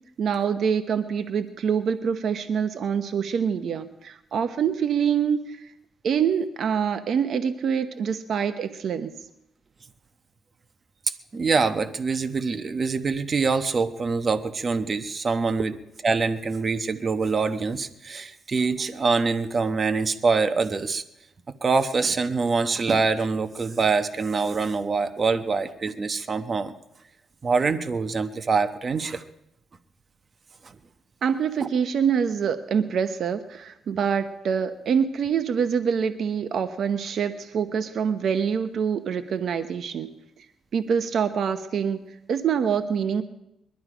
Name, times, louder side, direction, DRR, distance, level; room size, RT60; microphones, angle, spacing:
voice 1, 0.2-5.7 6.0-9.1 31.2-40.1 40.7-42.0 42.3-43.2, right 7 dB, 60° right, 9 dB, 0.9 m, -25 dB
voice 2, 11.3-15.7 16.0-21.0 21.6-26.7 27.4-29.2 31.6-31.7, right 4 dB, 35° right, 9 dB, 1.0 m, -24 dB
22.0 x 12.0 x 5.1 m, 0.84 s
cardioid pair, 90°, 0 cm